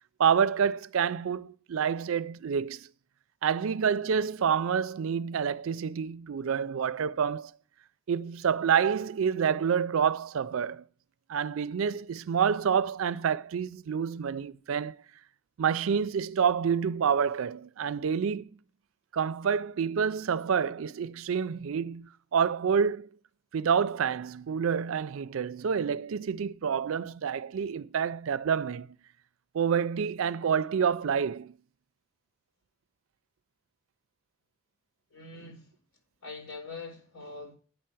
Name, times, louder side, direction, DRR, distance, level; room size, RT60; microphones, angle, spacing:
voice 1, 0.2-2.9 3.4-7.5 8.1-10.8 11.3-15.0 15.6-18.5 19.1-23.1 23.5-28.9 29.5-31.5, right 7 dB, 70° right, 0.4 m, -28 dB
voice 2, 35.1-35.7 36.2-37.5, left 3 dB, 75° left, 3.7 m, -43 dB
9.0 x 5.6 x 7.6 m
head